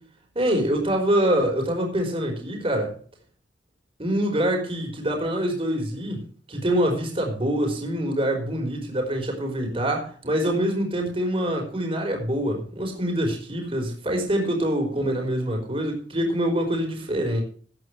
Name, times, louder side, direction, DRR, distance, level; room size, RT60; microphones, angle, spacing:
voice 1, 0.3-3.0 4.0-6.2 6.5-17.4, right 1 dB, 30° right, 2 dB, 4.8 m, -25 dB
17.0 x 11.0 x 3.3 m, 0.43 s
head